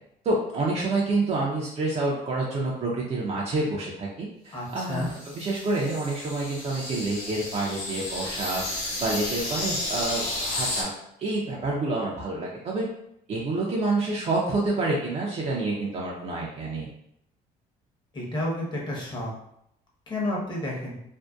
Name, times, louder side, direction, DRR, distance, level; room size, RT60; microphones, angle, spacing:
voice 1, 0.2-8.6 9.0-10.9 11.2-12.9 13.3-16.9, right 2 dB, 40° right, -4 dB, 0.5 m, -28 dB
voice 2, 4.5-5.1 18.1-19.3 20.1-21.0, left 1 dB, 25° left, -3 dB, 0.8 m, -30 dB
sound 1, 4.7-10.8, left 2 dB, 80° left, 0.8 m, -32 dB
2.6 x 2.1 x 2.3 m, 0.75 s
cardioid pair, 110°, 17 cm